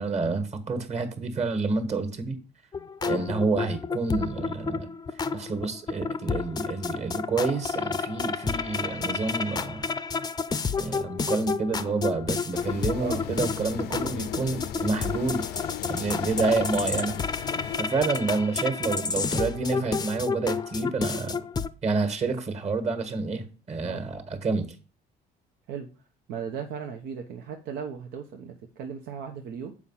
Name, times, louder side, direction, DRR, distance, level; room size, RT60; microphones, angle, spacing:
voice 1, 0.0-2.4 3.0-4.9 5.3-9.9 10.8-15.5 15.9-17.1 17.8-21.4 21.8-24.7, right 3 dB, 40° right, 9 dB, 1.6 m, -28 dB
sound 1, 2.7-21.7, left 5 dB, 25° left, 0.5 m, -31 dB
sound 2, 12.5-17.8, left 11 dB, 70° left, 0.5 m, -37 dB
voice 2, 26.3-29.7, right 7 dB, 85° right, 4 dB, 0.9 m, -37 dB
7.2 x 4.9 x 5.7 m, 0.35 s
cardioid pair, 110°, 17 cm